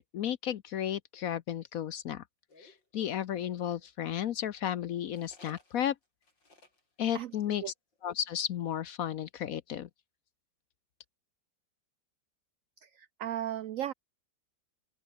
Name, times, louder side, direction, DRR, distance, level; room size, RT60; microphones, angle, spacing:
voice 1, 0.0-2.2 2.6-6.0 7.0-7.7 8.0-9.9, left 10 dB, 60° left, 1.0 m, -33 dB
sound 1, 2.5-3.9 5.1-6.8 7.1-7.3 7.6-7.7 7.9-8.3, left 2 dB, 85° left, 7.6 m, -59 dB
voice 2, 13.0-13.9, right 11 dB, 75° right, 0.7 m, -35 dB
open air
omnidirectional pair, 1.9 m